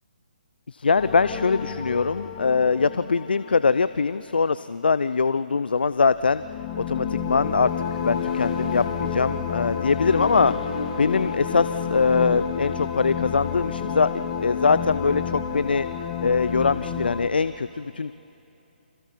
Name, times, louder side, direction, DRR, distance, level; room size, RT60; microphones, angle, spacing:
voice 1, 0.7-6.4 6.9-10.5 11.0-14.1 14.4-15.9 16.2-18.1, left 5 dB, 70° left, 15 dB, 0.5 m, -22 dB
sound 1, 0.9-4.4 6.2-17.3, left 7 dB, 25° left, 1.4 m, -30 dB
Accelerating revving vroom, 5.1-15.4, left 4 dB, 50° left, 2.2 m, -40 dB
28.5 x 26.5 x 4.6 m, 2.9 s
figure-of-eight pair, 145°, 5 cm